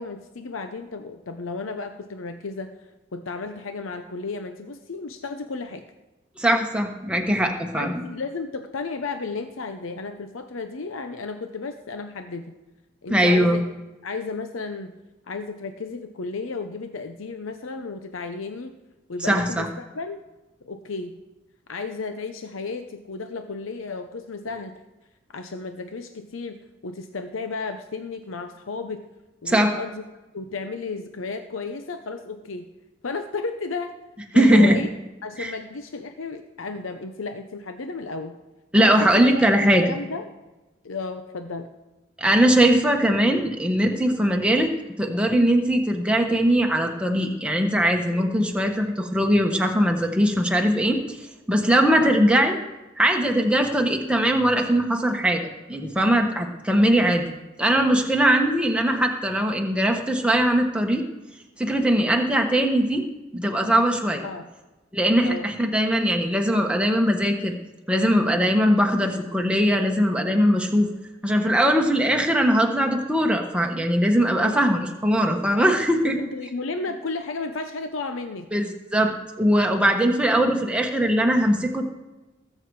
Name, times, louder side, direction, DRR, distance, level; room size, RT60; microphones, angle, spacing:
voice 1, 0.0-2.8 3.1-5.8 7.8-12.6 13.0-13.7 14.0-14.9 15.3-18.7 19.1-20.2 20.6-21.2 21.7-24.7 25.3-26.6 26.8-29.0 29.4-30.0 30.3-32.7 33.0-33.9 34.3-34.9 35.2-38.4 38.8-40.3 40.8-41.7 52.0-52.2 64.2-64.5 65.2-65.5 74.4-74.7 76.0-78.5 80.3-80.5, left 4 dB, 85° left, 7 dB, 0.7 m, -33 dB
voice 2, 6.4-8.0 13.1-13.6 19.3-19.7 29.5-29.7 34.3-34.8 35.4-35.6 38.7-39.8 42.2-44.7 45.0-51.2 51.5-52.6 53.0-57.3 57.6-61.0 61.6-63.0 63.3-64.2 64.9-67.5 67.9-70.9 71.2-76.1 78.5-81.8, equal, 5° right, 2 dB, 1.2 m, -20 dB
19.5 x 7.7 x 4.8 m, 1.1 s
head